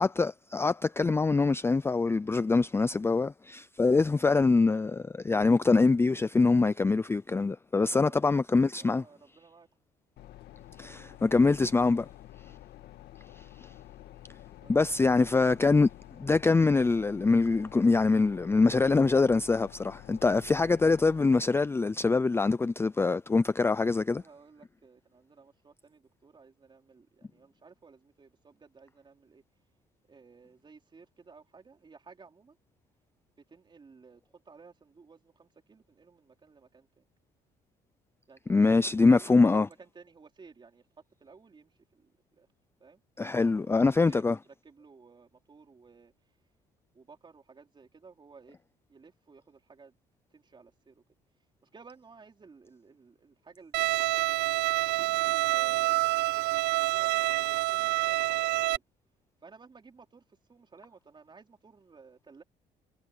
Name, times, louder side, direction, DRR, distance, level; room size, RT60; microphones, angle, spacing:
voice 1, 0.0-9.0 10.8-12.0 13.4-13.7 14.7-15.9 16.2-24.2 38.5-39.7 43.2-44.4, left 3 dB, 15° left, 0.5 m, -24 dB
voice 2, 8.0-9.7 10.9-12.1 14.6-14.7 24.0-29.4 30.1-32.6 33.3-37.1 38.3-40.9 41.2-42.5 42.8-43.0 43.3-46.1 46.9-48.6 48.9-50.0 50.3-51.0 51.6-53.9 55.0-56.3 56.5-58.8 59.4-62.4, right 5 dB, 25° right, 4.3 m, -55 dB
sound 1, 10.2-21.2, left 13 dB, 70° left, 2.1 m, -50 dB
Bowed string instrument, 53.7-58.8, right 20 dB, 80° right, 0.5 m, -27 dB
cardioid pair, 110°, 17 cm